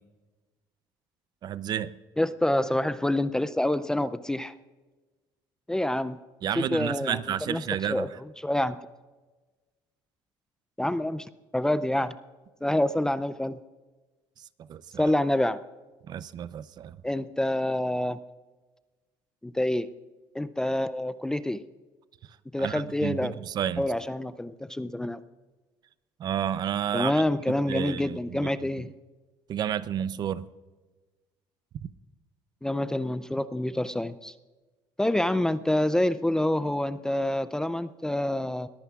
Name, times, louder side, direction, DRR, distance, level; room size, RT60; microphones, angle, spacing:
voice 1, 1.4-2.0 6.4-8.1 14.7-15.1 16.1-17.0 22.6-23.8 26.2-27.2 27.7-28.5 29.5-30.5 31.8-31.9, right 10 dB, 45° right, 0.6 m, -31 dB
voice 2, 2.2-4.5 5.7-6.2 6.6-7.2 7.5-7.6 7.9-8.1 8.4-8.8 10.8-11.3 11.5-12.2 12.6-13.6 15.0-15.6 17.0-18.2 19.4-19.9 20.3-21.6 22.5-23.3 23.8-25.2 26.9-28.9 32.6-34.3 35.0-38.7, left 1 dB, 5° left, 0.4 m, -27 dB
21.0 x 15.0 x 2.4 m
cardioid pair, 125°, 10 cm